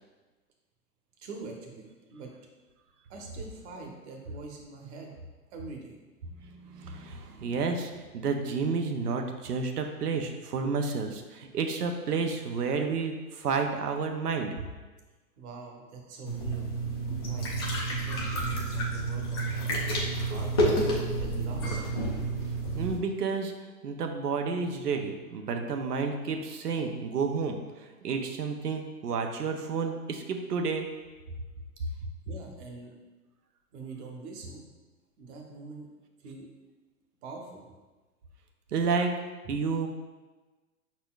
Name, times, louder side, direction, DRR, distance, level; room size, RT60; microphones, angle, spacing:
voice 1, 1.2-2.3 3.1-5.1 5.5-6.0 15.4-16.7 17.2-17.5 17.8-20.7 21.2-21.8 32.2-32.9 33.7-34.6 35.2-35.9 36.2-36.5 37.2-37.8 39.4-39.5, right 4 dB, 45° right, 1 dB, 1.1 m, -44 dB
voice 2, 6.4-14.7 22.7-23.5 23.8-27.6 28.0-30.9 38.7-39.1 39.5-39.9, right 5 dB, 85° right, 4 dB, 0.7 m, -30 dB
sound 1, 16.3-23.0, right 2 dB, 20° left, 0.3 m, -29 dB
5.3 x 4.2 x 2.4 m, 1.2 s
hypercardioid pair, 125°, 46 cm